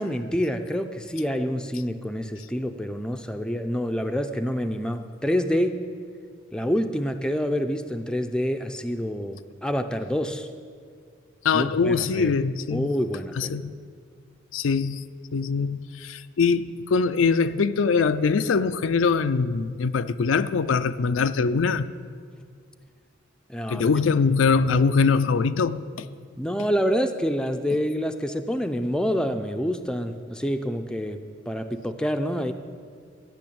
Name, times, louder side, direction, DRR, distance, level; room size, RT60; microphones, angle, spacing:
voice 1, 0.0-5.8 6.5-10.5 11.5-12.3 12.7-13.6 23.5-23.9 26.3-31.2 31.5-32.5, equal, 5° left, 6 dB, 0.5 m, -27 dB
voice 2, 11.4-12.9 13.4-13.7 14.5-15.0 15.3-21.9 23.7-26.1, left 5 dB, 80° left, 11 dB, 0.4 m, -23 dB
13.5 x 6.2 x 8.6 m, 2.1 s
head